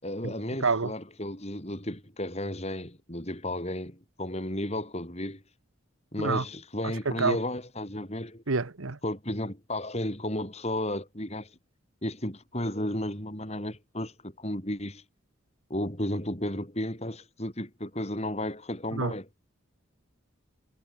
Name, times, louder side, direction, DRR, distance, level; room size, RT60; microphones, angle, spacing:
voice 1, 0.0-5.4 6.1-8.4 9.0-11.5 12.0-15.0 15.7-19.3, left 1 dB, 30° left, 6.2 m, -33 dB
voice 2, 0.6-0.9 6.2-6.4 6.8-7.4 8.5-9.0 18.9-19.1, right 4 dB, 80° right, 1.2 m, -28 dB
head